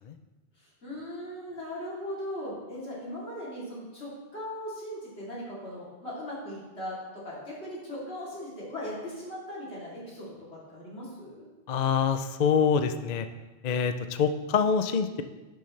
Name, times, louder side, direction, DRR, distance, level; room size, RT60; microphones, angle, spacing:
voice 1, 0.8-11.5, left 1 dB, 75° left, -7 dB, 3.4 m, -39 dB
voice 2, 11.7-13.3 13.6-15.2, left 6 dB, 55° left, 9 dB, 0.5 m, -25 dB
11.0 x 7.0 x 3.2 m, 1.2 s
omnidirectional pair, 1.1 m